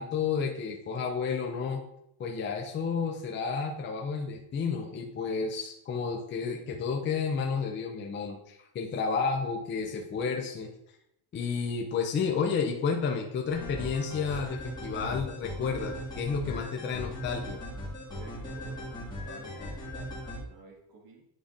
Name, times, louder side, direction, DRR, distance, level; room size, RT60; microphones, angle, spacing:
voice 1, 0.0-1.8 2.2-10.7 11.3-17.6, left 5 dB, 25° left, 2 dB, 0.4 m, -31 dB
sound 1, 13.5-20.4, equal, 10° left, 1.7 m, -39 dB
voice 2, 18.1-21.3, right 3 dB, 45° right, -2 dB, 1.8 m, -52 dB
9.4 x 4.9 x 2.5 m, 0.78 s
cardioid pair, 175°, 49 cm